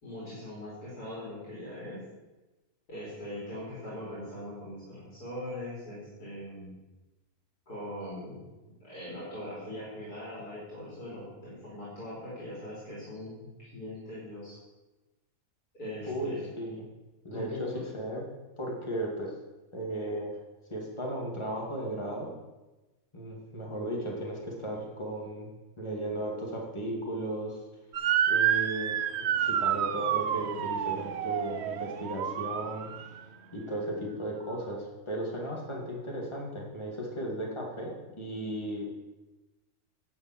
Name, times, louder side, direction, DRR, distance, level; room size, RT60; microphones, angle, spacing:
voice 1, 0.0-2.0 2.9-6.8 7.7-8.5 8.8-14.6 15.7-16.4 17.3-17.9, left 1 dB, 80° left, -7 dB, 3.7 m, -41 dB
voice 2, 16.1-16.8 17.2-18.2 18.6-19.3 19.7-20.3 20.7-22.3 23.1-25.5 25.8-27.6 28.3-32.9 33.5-39.0, right 1 dB, 20° left, -2 dB, 2.3 m, -35 dB
Motor vehicle (road) / Siren, 27.9-33.2, right 9 dB, 65° right, 0.7 m, -29 dB
10.5 x 5.4 x 7.8 m, 1.1 s
omnidirectional pair, 1.6 m